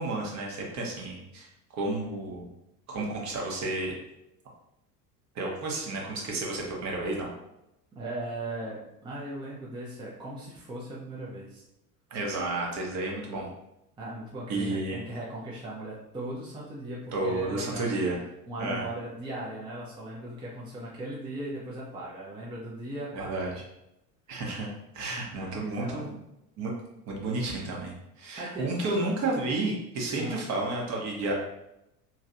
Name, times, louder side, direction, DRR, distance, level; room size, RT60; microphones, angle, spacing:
voice 1, 0.0-1.5 1.8-2.5 2.9-4.0 5.3-7.3 12.1-13.5 14.5-15.0 17.1-18.2 18.6-18.8 23.1-23.6 24.3-24.7 24.9-26.2 26.6-26.7 27.1-31.3, right 2 dB, 35° right, -1 dB, 0.9 m, -31 dB
voice 2, 7.9-11.6 14.0-18.0 18.5-23.5 25.3-26.0 28.4-28.7 30.2-30.5, right 1 dB, 10° right, -6 dB, 0.6 m, -38 dB
3.1 x 2.8 x 2.5 m, 0.86 s
figure-of-eight pair, 70°, 48 cm